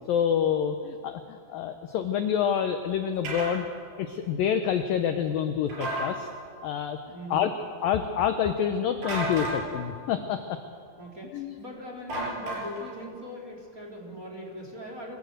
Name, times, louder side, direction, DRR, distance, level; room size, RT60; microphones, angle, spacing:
voice 1, 0.1-3.7 4.0-6.3 6.6-7.0 7.3-7.5 7.8-10.6 11.3-11.6, left 8 dB, 80° left, 7 dB, 2.0 m, -27 dB
sound 1, 3.2-3.5 5.7-6.1 9.0-9.6 12.1-12.9, right 1 dB, 60° right, 6.7 m, -31 dB
voice 2, 7.1-7.5 11.0-15.2, equal, 20° right, -1 dB, 3.1 m, -40 dB
24.0 x 17.0 x 8.0 m, 2.3 s
omnidirectional pair, 5.2 m